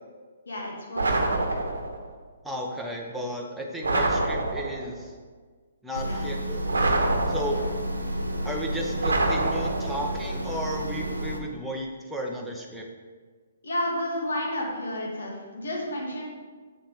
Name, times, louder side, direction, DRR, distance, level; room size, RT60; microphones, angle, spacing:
voice 1, 0.5-1.4 6.0-6.2 7.5-7.7 13.6-16.2, left 1 dB, 60° left, -2 dB, 2.7 m, -31 dB
sound 1, 1.0-2.0 3.8-4.9 6.7-7.8 9.0-10.1, right 2 dB, 65° right, 1.2 m, -26 dB
voice 2, 2.4-5.1 5.8-6.6 7.3-7.6 8.4-12.8, equal, ahead, -2 dB, 1.2 m, -33 dB
sound 2, 5.9-11.4, equal, 85° right, 1.2 m, -31 dB
7.8 x 7.1 x 5.5 m, 1.5 s
figure-of-eight pair, 125°, 0 cm